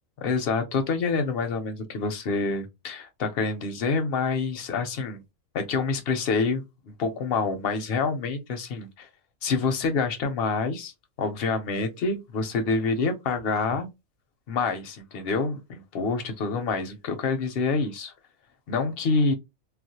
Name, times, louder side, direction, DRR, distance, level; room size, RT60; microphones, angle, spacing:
voice 1, 0.2-5.2 5.5-9.1 9.4-10.9 11.2-13.9 14.5-18.1 18.7-19.3, left 4 dB, 60° left, 0.7 m, -27 dB
2.4 x 2.0 x 2.6 m
omnidirectional pair, 1.4 m